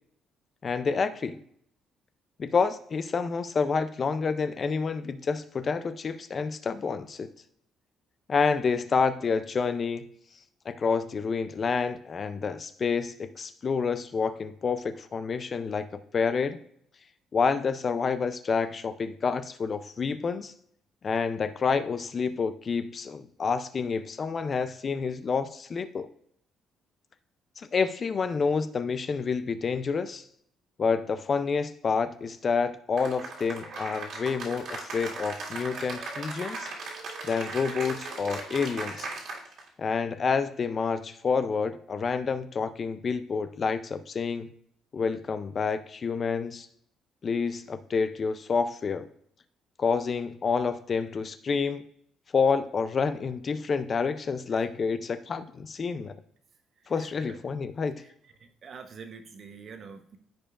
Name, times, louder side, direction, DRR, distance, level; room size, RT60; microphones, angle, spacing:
voice 1, 0.6-1.4 2.4-7.3 8.3-10.1 10.7-16.6 17.3-20.5 21.0-26.1 27.6-30.2 30.8-36.7 37.3-39.1 39.8-44.5 44.9-46.7 47.2-49.1 49.8-51.8 52.3-56.1 56.9-58.0, left 5 dB, 30° left, 11 dB, 0.4 m, -28 dB
Cheering / Applause, 33.0-39.7, right 3 dB, 60° right, 2.1 m, -38 dB
voice 2, 56.9-57.4 58.0-58.1 58.4-60.2, right 5 dB, 40° right, 7 dB, 0.8 m, -46 dB
14.5 x 5.1 x 2.4 m, 0.68 s
cardioid pair, 165°, 0 cm